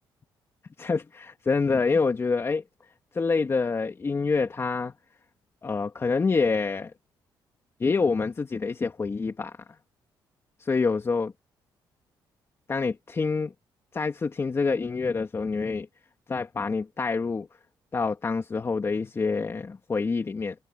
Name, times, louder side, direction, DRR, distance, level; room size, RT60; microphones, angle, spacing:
voice 1, 0.8-2.6 3.1-4.9 5.6-6.9 7.8-9.6 10.6-11.3 12.7-13.5 13.9-15.9 16.3-17.5 17.9-20.5, left 4 dB, 30° left, 2.8 m, -26 dB
cardioid pair, 100°, 9 cm